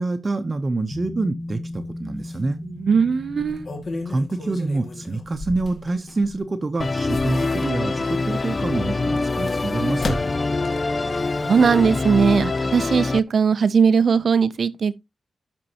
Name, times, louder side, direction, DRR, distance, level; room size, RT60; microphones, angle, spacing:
voice 1, 0.0-2.6 4.0-10.2, right 2 dB, 30° right, 0.8 m, -26 dB
sound 1, 0.9-10.0 10.3-10.4, left 2 dB, 15° left, 0.9 m, -38 dB
sound 2, 1.7-1.9 2.3-2.4 3.3-6.4 6.8-8.1 8.9-11.0 11.4-11.5, left 2 dB, 60° left, 2.0 m, -35 dB
voice 2, 2.6-3.7 11.4-15.0, right 6 dB, 60° right, 0.5 m, -19 dB
Musical instrument, 6.8-13.2, left 3 dB, 35° left, 0.4 m, -24 dB
13.0 x 5.3 x 2.9 m
wide cardioid pair, 115°, 0 cm